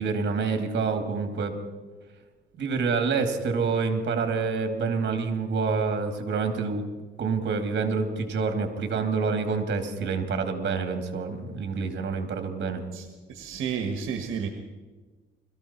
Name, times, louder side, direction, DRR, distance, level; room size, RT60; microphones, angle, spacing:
voice 1, 0.0-1.5 2.6-6.8 7.2-12.8, right 4 dB, 60° right, 6 dB, 2.6 m, -27 dB
voice 2, 12.9-14.5, right 7 dB, 85° right, 5 dB, 1.5 m, -32 dB
21.5 x 14.5 x 4.4 m, 1.3 s
cardioid pair, 90°, 20 cm